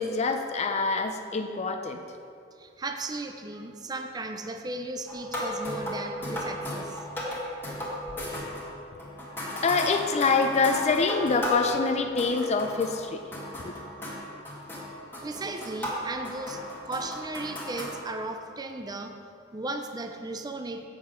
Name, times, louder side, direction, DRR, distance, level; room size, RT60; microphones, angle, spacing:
voice 1, 0.0-2.0 9.6-13.2 13.6-13.7, left 4 dB, 35° left, 6 dB, 0.4 m, -25 dB
voice 2, 2.6-7.1 15.2-19.1 19.5-20.8, right 2 dB, 20° right, 5 dB, 0.5 m, -36 dB
sound 1, 5.1-13.1 13.3-18.0, equal, 10° left, 1.7 m, -35 dB
7.4 x 7.1 x 5.0 m, 2.5 s
head